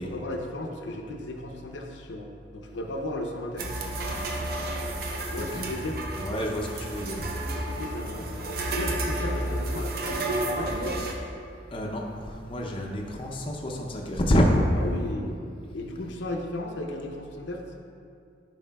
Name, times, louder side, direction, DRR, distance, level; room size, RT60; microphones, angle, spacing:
voice 1, 0.0-3.7 5.3-6.0 7.5-11.0 14.8-15.4 15.7-17.6, left 1 dB, 75° left, 2 dB, 0.6 m, -35 dB
sound 1, 3.6-11.1, right 1 dB, 55° right, 0.6 m, -31 dB
voice 2, 5.4-5.7 6.2-7.2 7.5-7.6 11.7-14.6, equal, 30° left, -1 dB, 0.5 m, -27 dB
11.0 x 4.8 x 2.3 m, 2.4 s
head